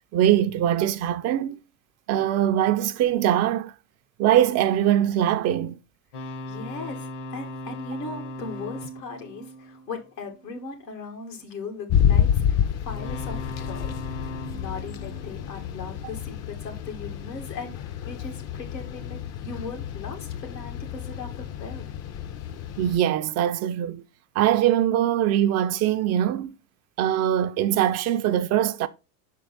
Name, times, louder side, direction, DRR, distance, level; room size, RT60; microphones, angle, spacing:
voice 1, 0.1-1.6 2.1-3.7 4.2-5.8 22.8-24.0 24.4-26.5 27.0-28.9, right 11 dB, 35° right, 0.4 m, -22 dB
sound 1, 6.1-10.5 12.9-16.2, left 1 dB, 55° left, 1.0 m, -38 dB
voice 2, 6.4-17.8 18.1-22.0, left 4 dB, 90° left, 2.1 m, -38 dB
sound 2, 11.9-23.0, left 9 dB, 35° left, 0.6 m, -29 dB
6.1 x 4.5 x 4.0 m
hypercardioid pair, 95°, 48 cm